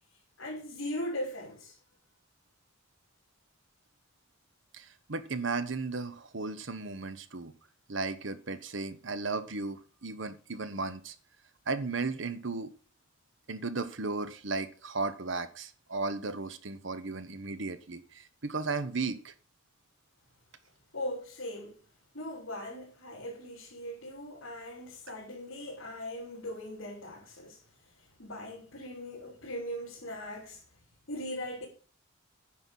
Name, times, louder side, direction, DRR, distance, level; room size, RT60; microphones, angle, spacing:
voice 1, 0.4-1.8 20.9-21.8 22.1-27.6 28.0-30.6 31.1-31.7, left 1 dB, 75° left, 4.1 m, -39 dB
voice 2, 4.7-7.5 7.9-11.1 11.7-12.7 13.5-19.3, right 3 dB, 65° right, 1.1 m, -35 dB
9.9 x 5.7 x 6.3 m
head